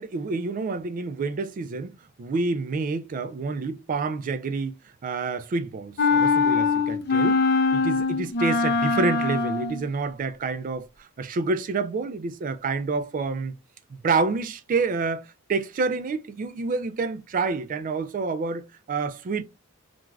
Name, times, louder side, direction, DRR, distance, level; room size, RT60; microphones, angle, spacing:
voice 1, 0.0-1.9 2.2-4.7 5.0-7.4 7.7-13.6 13.9-19.4, right 4 dB, 40° right, 0.3 m, -28 dB
sound 1, 6.0-9.9, left 4 dB, 50° left, 0.4 m, -22 dB
2.4 x 2.3 x 3.2 m
head